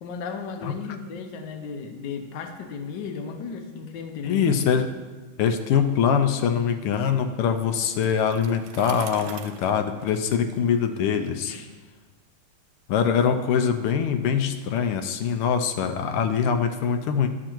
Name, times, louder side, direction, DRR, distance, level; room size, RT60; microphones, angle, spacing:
voice 1, 0.0-4.5 11.4-11.7, left 5 dB, 65° left, 5 dB, 1.3 m, -35 dB
voice 2, 4.2-4.9 5.4-11.5 12.9-17.3, left 7 dB, 80° left, 7 dB, 1.5 m, -23 dB
Bicycle, 7.6-11.4, right 8 dB, 80° right, 1.4 m, -44 dB
11.5 x 7.2 x 3.0 m, 1.3 s
omnidirectional pair, 2.4 m